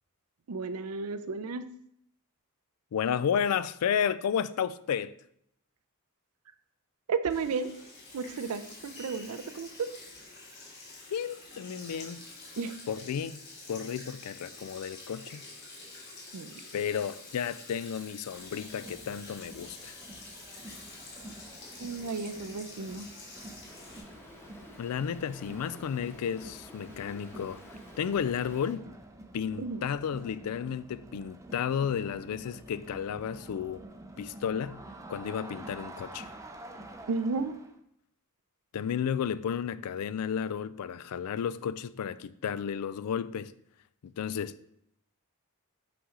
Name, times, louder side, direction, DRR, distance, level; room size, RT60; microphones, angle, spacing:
voice 1, 0.5-1.7 7.1-7.7 8.1-9.9 12.6-12.7 16.3-16.6 21.8-23.1 29.6-29.8 37.1-37.6, right 4 dB, 75° right, 0.5 m, -33 dB
voice 2, 2.9-5.1 11.1-12.2 12.9-13.4 13.7-15.4 16.7-20.0 24.8-27.6 28.0-28.9 29.3-33.8 34.2-34.8 35.1-36.3 38.7-43.5 44.0-44.5, left 8 dB, 80° left, 0.3 m, -32 dB
Sink (filling or washing), 7.3-24.0, left 2 dB, 50° left, 2.3 m, -48 dB
Crowd, 18.3-37.8, right 1 dB, 15° right, 0.5 m, -49 dB
Stream, 23.6-28.7, left 1 dB, 10° left, 1.0 m, -51 dB
5.7 x 5.4 x 3.7 m
head